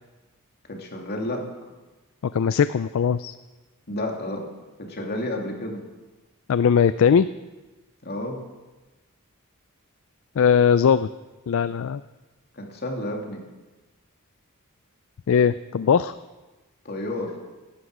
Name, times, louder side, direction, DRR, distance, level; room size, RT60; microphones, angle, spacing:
voice 1, 0.7-1.4 3.9-4.4 4.8-5.8 8.0-8.4 12.6-13.4 16.8-17.3, left 1 dB, 50° left, 1 dB, 2.6 m, -30 dB
voice 2, 2.3-3.3 6.5-7.3 10.4-11.1 11.5-12.0 15.3-16.1, left 7 dB, 65° left, 13 dB, 0.4 m, -19 dB
17.5 x 11.5 x 4.9 m, 1.2 s
head